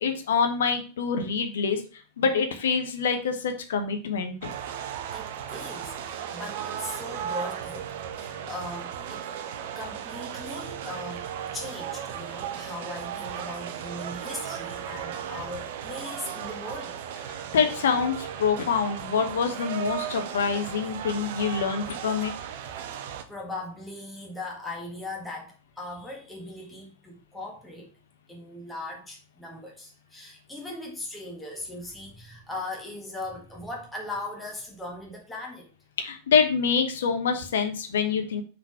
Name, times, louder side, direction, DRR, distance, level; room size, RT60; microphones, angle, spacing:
voice 1, 0.0-1.8 2.2-4.5 17.5-22.3 36.0-38.4, left 6 dB, 60° left, 1.0 m, -26 dB
sound 1, 4.4-23.2, right 9 dB, 55° right, 0.7 m, -36 dB
voice 2, 5.1-7.9 8.2-9.3 9.7-11.3 11.5-17.0 23.0-27.9 28.3-35.7, left 2 dB, 5° left, 1.5 m, -39 dB
5.8 x 3.9 x 4.6 m
figure-of-eight pair, 90°, 0 cm